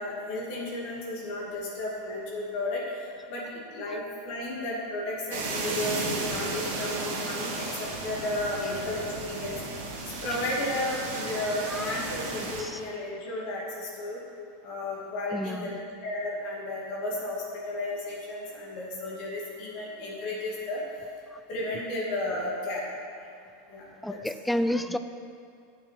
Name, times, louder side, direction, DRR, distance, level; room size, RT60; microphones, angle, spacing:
voice 1, 0.0-2.8 3.3-3.4 3.7-9.6 10.0-14.2 14.6-15.8 16.0-20.8 21.5-22.8 23.7-24.2, left 2 dB, 55° left, -4 dB, 2.5 m, -33 dB
sound 1, 5.3-12.6, right 3 dB, 60° right, 1.8 m, -34 dB
voice 2, 11.7-12.0 12.6-12.8 15.3-15.7 21.3-21.4 24.0-25.0, left 1 dB, 5° left, 10 dB, 0.5 m, -30 dB
8.7 x 7.4 x 5.9 m, 2.3 s
figure-of-eight pair, 85°, 0 cm